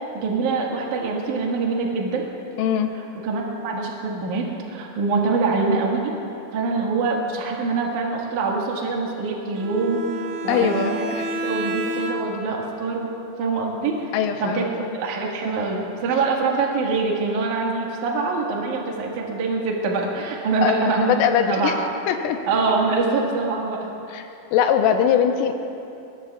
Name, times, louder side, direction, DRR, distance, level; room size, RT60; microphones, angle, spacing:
voice 1, 0.1-2.3 3.2-6.1 6.5-11.0 11.4-13.1 13.4-14.1 14.4-14.7 14.9-21.2 21.5-21.8 22.5-23.9, right 4 dB, 55° right, -2 dB, 2.4 m, -24 dB
voice 2, 2.6-2.9 10.5-11.3 14.1-14.9 20.6-21.7 22.1-22.4 24.1-24.2 24.5-25.5, left 8 dB, 85° left, 5 dB, 3.4 m, -21 dB
Bowed string instrument, 9.5-12.6, right 1 dB, 80° right, 3.6 m, -30 dB
21.5 x 21.5 x 2.4 m, 2.8 s
omnidirectional pair, 5.8 m